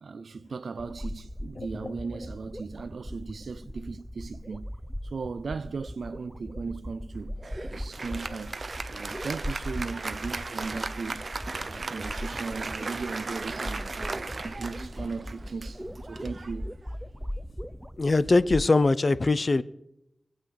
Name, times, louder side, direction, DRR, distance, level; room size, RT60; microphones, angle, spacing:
voice 1, 0.0-4.7 5.0-7.4 7.7-8.5 8.9-11.2 11.6-14.2 14.6-16.7, right 4 dB, 75° right, 0.4 m, -37 dB
sound 1, 0.8-18.7, equal, 5° right, 0.6 m, -39 dB
voice 2, 1.6-1.9 18.0-19.6, left 3 dB, 40° left, 0.6 m, -22 dB
Applause, 7.4-17.2, right 3 dB, 45° right, 0.8 m, -37 dB
21.5 x 8.1 x 6.5 m
wide cardioid pair, 115°, 0 cm